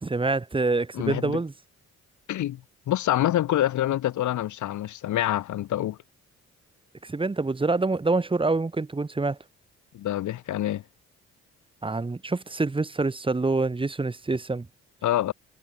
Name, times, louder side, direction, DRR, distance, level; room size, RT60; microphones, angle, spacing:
voice 1, 0.0-1.5 7.0-9.4 11.8-14.7, right 3 dB, 15° right, 1.3 m, -26 dB
voice 2, 0.9-1.4 2.3-2.6 2.9-6.0 9.9-10.8 15.0-15.3, left 13 dB, 75° left, 1.7 m, -26 dB
cardioid pair, 90°, 30 cm